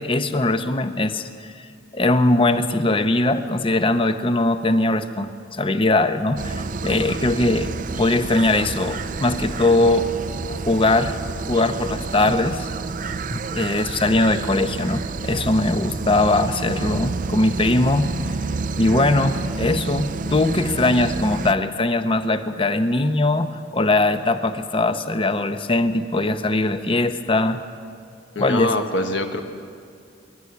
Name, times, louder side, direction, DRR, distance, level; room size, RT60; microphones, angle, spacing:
voice 1, 0.0-1.7 1.9-7.7 8.0-10.1 10.5-11.2 11.5-12.7 13.3-18.1 18.8-27.6 28.4-28.8, left 2 dB, 30° left, 10 dB, 0.8 m, -21 dB
sound 1, 6.4-21.5, right 3 dB, 45° right, 0.5 m, -29 dB
voice 2, 28.3-29.4, left 2 dB, 70° left, 5 dB, 1.4 m, -24 dB
24.0 x 11.5 x 9.7 m, 2.3 s
head